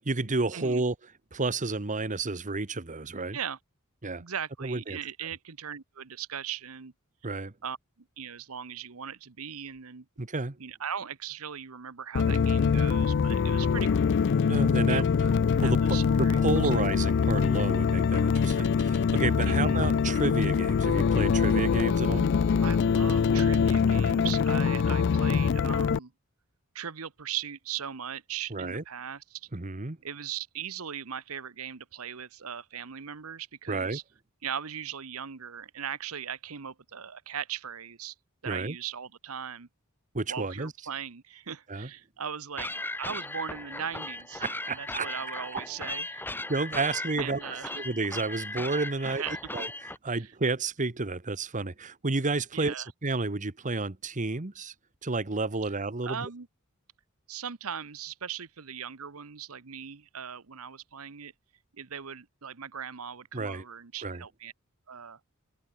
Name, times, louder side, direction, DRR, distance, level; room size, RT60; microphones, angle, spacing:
voice 1, 0.0-0.9 1.3-3.4 4.0-4.2 4.6-5.0 7.2-7.5 10.2-10.6 14.5-15.0 15.6-22.3 28.5-28.8 29.5-30.0 33.7-34.0 38.4-38.8 40.1-40.7 41.7-41.9 44.4-45.1 45.5-45.6 46.5-47.4 47.7-49.2 49.5-49.7 50.0-52.7 53.0-54.7 55.0-56.3 63.3-63.6 64.0-64.2, right 3 dB, 35° right, 1.2 m, -31 dB
voice 2, 4.2-6.9 7.6-7.8 8.2-10.0 10.6-14.2 14.9-16.7 19.5-19.8 22.6-26.1 26.7-29.5 30.0-34.0 34.4-38.1 38.4-39.7 40.3-44.4 44.7-46.3 46.8-47.8 49.0-49.4 50.1-50.3 52.5-52.9 56.0-56.5 57.3-61.3 61.8-64.5 64.9-65.2, right 8 dB, 75° right, 1.0 m, -39 dB
sound 1, 12.1-26.0, left 6 dB, 55° left, 0.4 m, -24 dB
sound 2, 42.6-50.0, left 2 dB, 10° left, 3.4 m, -37 dB
open air
head